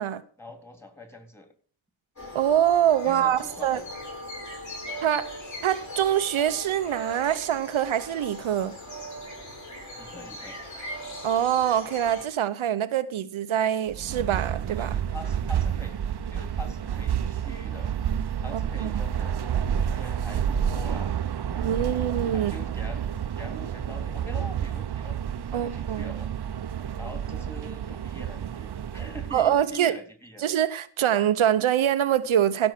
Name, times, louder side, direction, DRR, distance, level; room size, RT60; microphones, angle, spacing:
voice 1, 0.4-1.5 3.0-3.8 10.0-10.6 14.8-16.0 16.3-17.9 18.4-19.4 19.9-21.2 21.4-22.0 22.3-23.0 23.3-26.3 27.0-30.4, left 1 dB, 5° left, 3.5 m, -44 dB
sound 1, 2.2-12.2, equal, 35° left, 7.4 m, -39 dB
voice 2, 2.3-3.8 5.0-5.3 5.6-8.7 11.2-14.9 18.5-19.0 21.6-22.5 25.5-26.1 29.3-30.0 30.4-32.7, right 10 dB, 85° right, 0.8 m, -24 dB
sound 2, 13.9-29.6, right 8 dB, 55° right, 0.8 m, -30 dB
16.0 x 6.2 x 6.0 m
cardioid pair, 65°, 47 cm